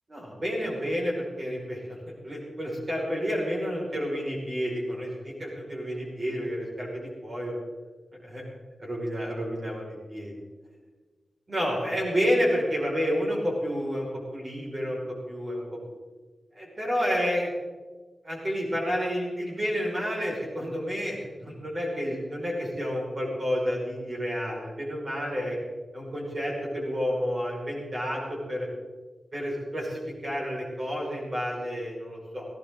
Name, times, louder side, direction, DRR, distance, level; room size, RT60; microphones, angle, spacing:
voice 1, 0.1-2.0 2.2-7.5 8.2-8.4 8.8-10.3 11.5-15.6 16.6-17.5 18.2-25.6 25.9-28.7 29.3-32.5, equal, 35° right, -3 dB, 5.2 m, -30 dB
18.5 x 16.5 x 3.8 m, 1.3 s
wide cardioid pair, 100°, 0 cm